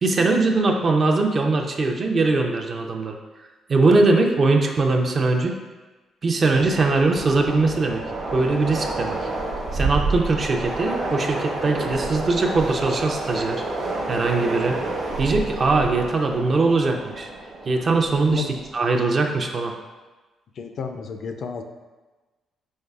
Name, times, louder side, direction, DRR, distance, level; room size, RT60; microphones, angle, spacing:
voice 1, 0.0-3.2 3.7-5.5 6.2-8.0 8.3-9.3 9.7-13.6 14.1-14.8 15.2-17.3 17.7-18.4 18.7-19.7, right 3 dB, 45° right, 3 dB, 0.5 m, -21 dB
Train, 6.5-18.8, right 2 dB, 85° right, 1.2 m, -29 dB
voice 2, 20.6-21.6, left 6 dB, 60° left, 6 dB, 0.4 m, -31 dB
5.3 x 3.2 x 2.3 m, 1.2 s
cardioid pair, 90°, 0 cm